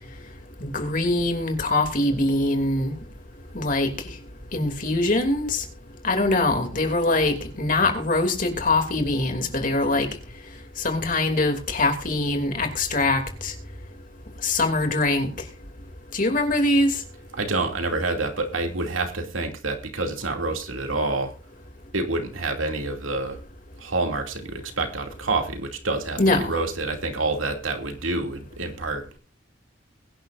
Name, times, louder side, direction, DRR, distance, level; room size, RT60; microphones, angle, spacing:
voice 1, 0.6-2.9 3.5-3.9 4.5-5.6 6.0-10.1 10.8-13.5 14.4-15.3 16.1-17.0 26.2-26.5, left 2 dB, 45° left, 5 dB, 2.8 m, -23 dB
voice 2, 17.3-21.3 21.9-23.4 23.8-29.0, right 3 dB, 85° right, 3 dB, 2.7 m, -27 dB
22.0 x 10.5 x 2.6 m, 0.36 s
head